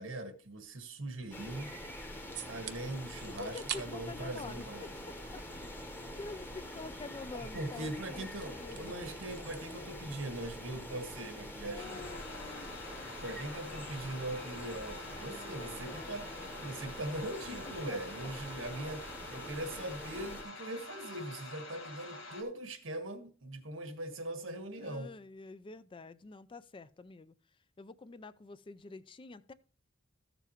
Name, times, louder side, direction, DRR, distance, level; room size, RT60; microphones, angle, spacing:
voice 1, 0.0-1.7 2.4-5.1 7.5-12.2 13.2-16.3 16.6-19.0 19.3-25.1, right 1 dB, 85° right, 1.4 m, -41 dB
sound 1, 1.3-20.4, left 1 dB, 10° left, 1.1 m, -45 dB
sound 2, 2.3-2.7 3.2-3.8 4.1-5.4 5.7-9.8, right 9 dB, 55° right, 0.7 m, -47 dB
voice 2, 3.3-5.4 5.7-9.0 11.6-12.7 15.1-16.6 17.6-18.0 24.8-27.4 27.8-29.5, left 3 dB, 25° left, 0.4 m, -48 dB
sound 3, 11.8-22.4, left 2 dB, 85° left, 1.8 m, -47 dB
14.0 x 7.0 x 3.0 m
head